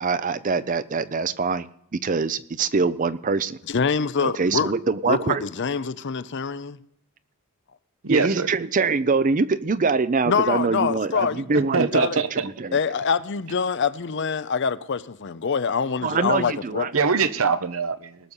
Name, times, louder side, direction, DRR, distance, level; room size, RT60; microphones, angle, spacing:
voice 1, 0.0-3.6 4.2-5.4 8.1-12.8 16.0-16.9, right 4 dB, 35° right, 0.5 m, -24 dB
voice 2, 3.7-4.7 5.0-6.8 10.3-12.2 12.7-16.9, left 5 dB, 50° left, 0.5 m, -25 dB
voice 3, 8.0-8.5 11.7-12.5 16.9-18.2, right 5 dB, 65° right, 0.8 m, -23 dB
19.0 x 6.8 x 5.5 m
head